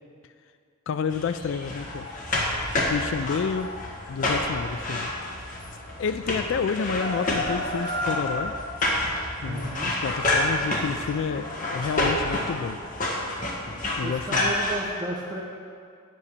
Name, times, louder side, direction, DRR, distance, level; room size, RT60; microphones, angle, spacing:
voice 1, 0.9-2.1 2.7-3.7 4.1-5.4 6.0-8.5 9.4-12.8 14.0-14.5, left 6 dB, 60° left, 10 dB, 0.3 m, -30 dB
sound 1, 1.1-14.8, left 1 dB, 40° left, 1.5 m, -28 dB
voice 2, 9.4-9.9 14.0-15.4, right 1 dB, 20° right, -3 dB, 0.8 m, -33 dB
8.5 x 8.4 x 6.6 m, 2.2 s
head